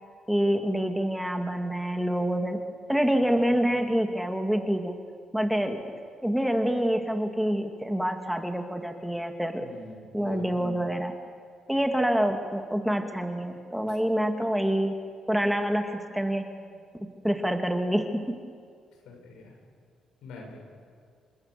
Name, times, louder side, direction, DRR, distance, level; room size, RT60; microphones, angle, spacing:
voice 1, 0.3-2.6 2.9-5.0 5.3-5.8 6.2-9.6 10.1-11.1 11.7-14.9 15.3-16.4 17.2-18.4, equal, 5° right, 4 dB, 2.5 m, -26 dB
voice 2, 9.6-10.6 16.5-16.8 19.0-19.5 20.2-20.6, left 3 dB, 85° left, 1 dB, 8.0 m, -45 dB
29.0 x 25.0 x 7.0 m, 2.1 s
cardioid pair, 90°, 0 cm